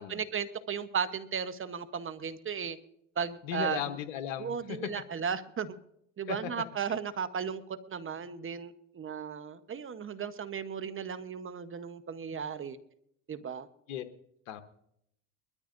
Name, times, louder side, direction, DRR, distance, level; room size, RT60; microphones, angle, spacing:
voice 1, 0.0-2.8 3.2-3.8 4.4-5.7 6.2-12.8 13.3-13.7, right 7 dB, 30° right, 12 dB, 1.1 m, -35 dB
voice 2, 3.4-4.9 6.3-6.5 6.9-7.0 13.9-14.0 14.5-14.6, left 11 dB, 80° left, 8 dB, 1.1 m, -36 dB
22.0 x 13.5 x 2.6 m, 0.73 s
hypercardioid pair, 80°, 39 cm